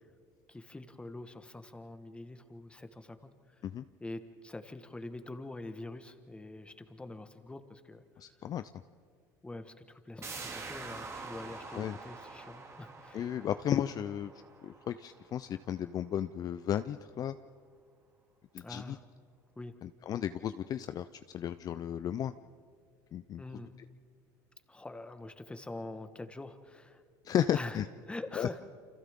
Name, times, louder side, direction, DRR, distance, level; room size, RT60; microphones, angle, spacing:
voice 1, 0.5-3.3 4.0-8.0 9.4-13.4 18.6-19.0 19.5-19.7 23.4-23.7 24.7-27.0 27.5-27.8 28.1-28.6, left 2 dB, 10° left, 9 dB, 1.4 m, -45 dB
voice 2, 8.2-8.7 11.7-12.0 13.1-14.3 14.6-17.3 18.5-19.0 19.8-21.0 21.3-22.3 23.1-23.4 27.2-27.9 28.4-28.5, left 10 dB, 45° left, 11 dB, 0.5 m, -34 dB
sound 1, 10.2-15.7 16.0-16.1, right 4 dB, 30° right, 2.5 m, -46 dB
29.0 x 26.0 x 3.7 m, 2.1 s
supercardioid pair, 100°, 9 cm